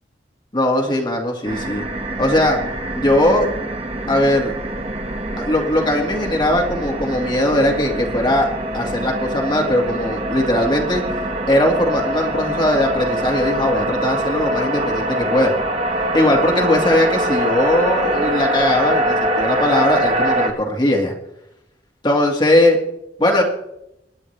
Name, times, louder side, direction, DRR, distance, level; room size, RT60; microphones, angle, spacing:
voice 1, 0.5-1.8 2.2-2.6 2.9-3.5 4.1-4.5 5.4-8.5 8.7-11.0 11.5-15.5 16.1-21.1 22.0-22.8 23.2-23.4, left 1 dB, 25° left, 0 dB, 1.9 m, -19 dB
sound 1, 1.4-20.5, right 1 dB, 35° right, 1.5 m, -23 dB
26.0 x 9.7 x 3.3 m, 0.83 s
head